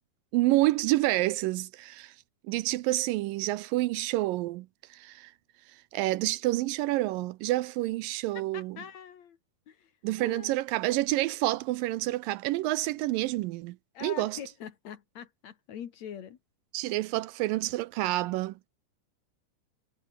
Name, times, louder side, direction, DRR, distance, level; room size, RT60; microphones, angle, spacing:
voice 1, 0.3-2.1 2.4-5.3 5.9-8.8 10.0-13.8 14.0-14.4 16.7-18.7, right 18 dB, 80° right, 2.2 m, -28 dB
voice 2, 8.3-9.4 9.7-9.9 10.2-10.6 13.9-16.4, left 8 dB, 55° left, 2.5 m, -43 dB
omnidirectional pair, 4.2 m